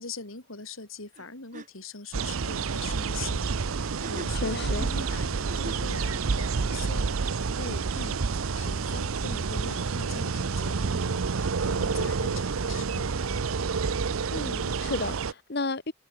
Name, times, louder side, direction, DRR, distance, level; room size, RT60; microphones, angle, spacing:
voice 1, 0.0-8.2 8.6-13.1, left 4 dB, 75° left, 4.3 m, -42 dB
sound 1, 1.1-1.3 1.5-1.7 3.8-6.0, right 1 dB, 35° right, 4.6 m, -42 dB
sound 2, 2.1-15.3, right 5 dB, 85° right, 0.7 m, -29 dB
voice 2, 4.3-4.9 14.3-15.9, left 3 dB, 50° left, 1.3 m, -32 dB
head